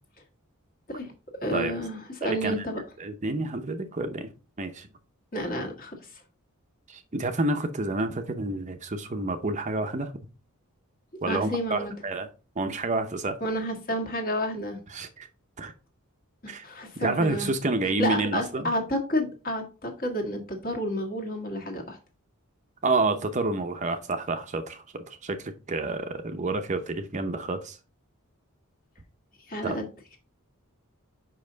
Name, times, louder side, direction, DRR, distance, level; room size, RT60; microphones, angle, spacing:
voice 1, 1.4-2.8 5.3-6.2 11.3-11.9 13.4-14.8 16.4-17.5 17.8-22.0 29.5-29.9, equal, 40° left, 1.7 m, -30 dB
voice 2, 2.2-2.6 3.0-4.3 4.6-4.9 6.9-10.1 11.2-12.3 12.6-13.4 14.9-15.3 15.6-15.7 16.5-16.6 17.0-18.7 22.8-27.8 29.6-29.8, right 2 dB, 35° right, 0.7 m, -29 dB
5.5 x 5.4 x 3.8 m
head